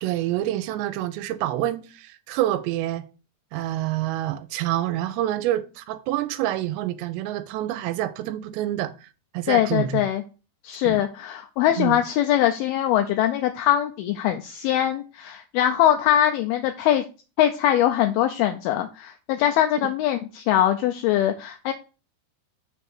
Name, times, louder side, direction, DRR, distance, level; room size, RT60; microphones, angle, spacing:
voice 1, 0.0-3.0 3.5-8.9 9.3-10.0 10.8-11.0 11.8-12.0, right 13 dB, 85° right, 2.8 m, -27 dB
voice 2, 9.5-10.2 10.6-17.0 17.4-21.7, left 11 dB, 85° left, 2.2 m, -22 dB
6.2 x 3.5 x 5.9 m
omnidirectional pair, 5.0 m